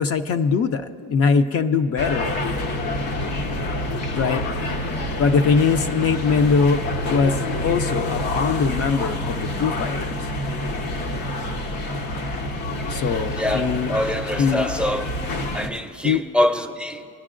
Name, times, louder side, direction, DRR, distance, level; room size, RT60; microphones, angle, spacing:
voice 1, 0.0-2.3 4.2-4.4 5.2-10.3 12.9-13.9 14.4-14.7 16.0-16.2, left 5 dB, 45° left, 8 dB, 0.5 m, -22 dB
sound 1, 2.0-15.7, left 1 dB, 80° left, 1.1 m, -27 dB
voice 2, 13.3-15.1 15.5-17.1, left 1 dB, 5° right, 7 dB, 0.5 m, -24 dB
25.5 x 9.6 x 2.5 m, 2.5 s
cardioid pair, 120°, 34 cm